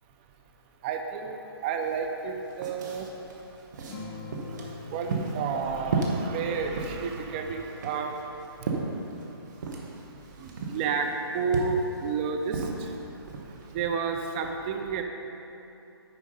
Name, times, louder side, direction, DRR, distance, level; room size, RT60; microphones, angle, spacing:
voice 1, 0.8-15.0, right 5 dB, 25° right, 4 dB, 0.4 m, -32 dB
sound 1, 1.8-1.9 2.2-13.7, right 3 dB, 45° right, 1.1 m, -35 dB
sound 2, 3.9-8.8, left 4 dB, 20° left, 0.7 m, -45 dB
9.4 x 4.4 x 5.4 m, 2.9 s
figure-of-eight pair, 140°, 14 cm